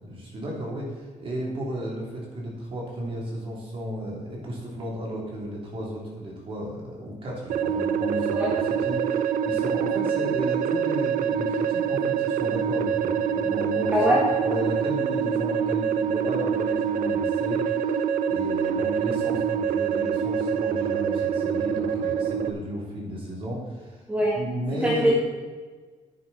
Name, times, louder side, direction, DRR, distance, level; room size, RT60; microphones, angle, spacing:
voice 1, 0.0-25.1, equal, 45° right, -3 dB, 3.3 m, -34 dB
sound 1, 7.5-22.5, right 7 dB, 85° right, 0.6 m, -25 dB
voice 2, 13.9-14.2 24.1-24.4 24.8-25.1, equal, 10° right, -4 dB, 1.6 m, -22 dB
11.0 x 9.0 x 4.3 m, 1.4 s
cardioid pair, 165°, 13 cm